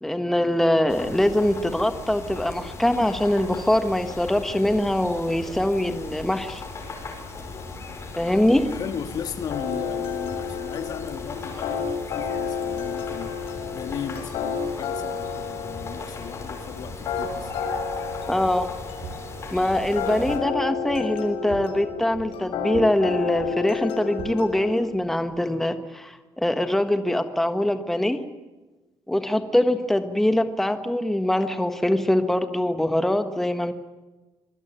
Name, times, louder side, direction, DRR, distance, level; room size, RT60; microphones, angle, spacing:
voice 1, 0.0-6.6 8.2-8.7 18.3-18.7 19.5-28.2 29.1-33.7, left 1 dB, 5° left, 8 dB, 1.5 m, -23 dB
sound 1, 0.9-20.4, left 3 dB, 30° left, 5.8 m, -38 dB
voice 2, 8.7-13.4 13.7-17.5, left 7 dB, 45° left, 9 dB, 2.0 m, -36 dB
sound 2, 9.5-24.8, left 6 dB, 80° left, 6.6 m, -31 dB
sound 3, 16.8-25.4, right 5 dB, 50° right, 3.7 m, -45 dB
25.0 x 20.0 x 9.1 m, 1.1 s
cardioid pair, 165°, 9 cm